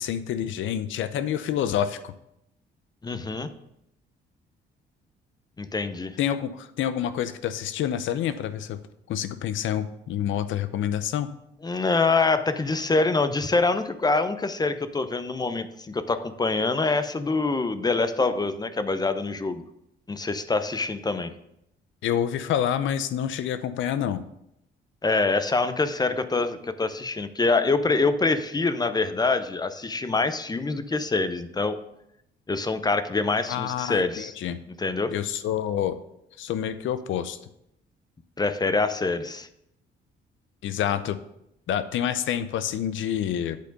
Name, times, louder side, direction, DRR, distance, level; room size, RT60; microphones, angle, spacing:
voice 1, 0.0-2.1 6.2-8.8 9.1-11.3 22.0-24.2 33.5-34.6 35.1-36.0 36.4-37.4 40.6-41.2 41.7-43.6, left 10 dB, 75° left, 12 dB, 0.6 m, -27 dB
voice 2, 3.0-3.5 5.6-6.2 11.6-19.6 20.1-21.3 25.0-31.8 32.5-34.3 34.8-35.1 38.4-39.5, left 3 dB, 20° left, 11 dB, 0.6 m, -25 dB
8.3 x 4.3 x 5.2 m, 0.80 s
cardioid pair, 90°, 20 cm